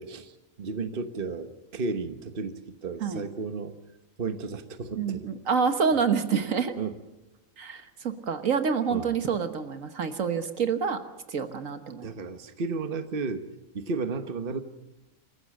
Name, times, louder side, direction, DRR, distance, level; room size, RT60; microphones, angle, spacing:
voice 1, 0.0-3.8 4.2-5.3 6.8-6.9 8.9-9.1 12.0-13.5 13.7-14.6, right 4 dB, 40° right, 9 dB, 1.4 m, -33 dB
voice 2, 5.0-6.8 7.6-11.0 11.3-12.1, right 6 dB, 70° right, 9 dB, 1.6 m, -27 dB
26.5 x 15.0 x 7.7 m, 0.99 s
omnidirectional pair, 1.4 m